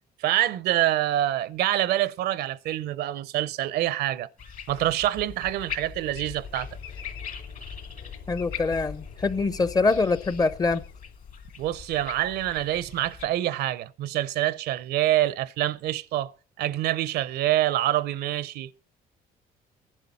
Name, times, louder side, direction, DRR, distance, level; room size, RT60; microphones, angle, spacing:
voice 1, 0.2-4.3 4.7-6.7 11.6-16.3 16.6-18.7, right 13 dB, 75° right, 0.6 m, -26 dB
sound 1, 4.4-13.3, left 7 dB, 55° left, 1.9 m, -41 dB
sound 2, 6.1-11.5, left 6 dB, 75° left, 2.4 m, -44 dB
voice 2, 8.3-10.8, left 3 dB, 25° left, 0.6 m, -24 dB
18.5 x 11.0 x 4.1 m
cardioid pair, 110°, 17 cm